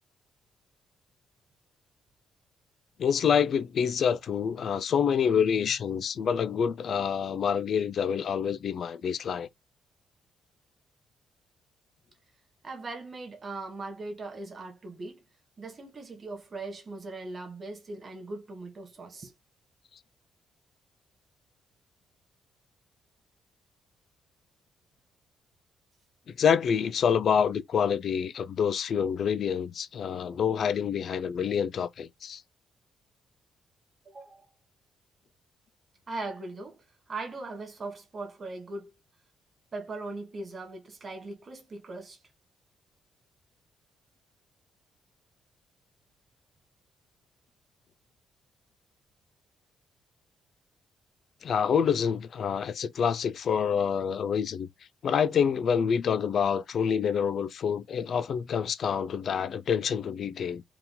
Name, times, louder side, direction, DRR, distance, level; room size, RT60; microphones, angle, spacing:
voice 1, 3.0-9.5 26.4-32.4 51.4-54.7 55.0-60.6, left 7 dB, 50° left, 0.4 m, -27 dB
voice 2, 12.6-15.2 15.6-19.3 34.0-34.5 36.1-38.9 39.7-42.2, right 2 dB, 30° right, 1.4 m, -39 dB
4.6 x 2.4 x 3.6 m
cardioid pair, 160°, 0 cm